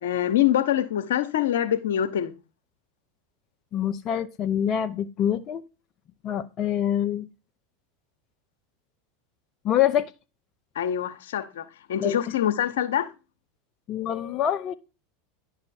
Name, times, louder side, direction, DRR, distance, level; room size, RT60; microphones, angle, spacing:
voice 1, 0.0-2.3 10.7-13.1, left 11 dB, 80° left, 1.0 m, -25 dB
voice 2, 3.7-5.6 6.2-7.2 9.6-10.1 12.0-12.2 13.9-14.7, left 10 dB, 40° left, 0.7 m, -25 dB
10.5 x 6.0 x 4.3 m
hypercardioid pair, 95°, 0 cm